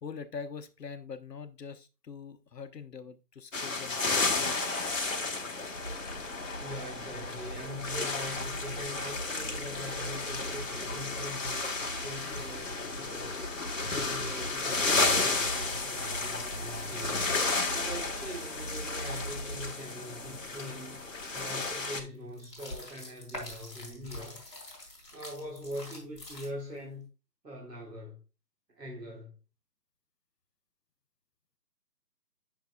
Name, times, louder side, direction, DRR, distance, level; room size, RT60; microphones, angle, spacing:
voice 1, 0.0-4.6, left 5 dB, 75° left, 0.9 m, -43 dB
sound 1, 3.5-22.0, left 3 dB, 50° left, 1.2 m, -33 dB
sound 2, 5.7-19.7, right 1 dB, 25° right, 2.0 m, -42 dB
voice 2, 6.6-13.4 13.9-17.2 17.7-21.0 21.3-24.4 25.1-27.1 27.4-28.2 28.8-29.4, equal, 75° right, 2.1 m, -43 dB
sound 3, 21.1-26.8, left 1 dB, ahead, 1.8 m, -46 dB
8.3 x 6.1 x 2.3 m
figure-of-eight pair, 170°, 49 cm